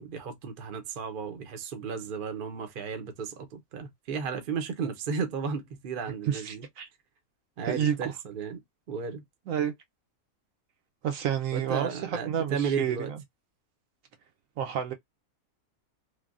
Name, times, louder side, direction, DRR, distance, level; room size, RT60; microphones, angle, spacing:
voice 1, 0.0-6.7 7.6-8.6 8.9-9.2 11.5-13.1, right 6 dB, 50° right, 0.6 m, -34 dB
voice 2, 6.3-6.9 7.6-8.1 9.5-9.7 11.0-13.2 14.6-14.9, right 9 dB, 70° right, 0.9 m, -30 dB
3.3 x 2.1 x 2.4 m
omnidirectional pair, 1.6 m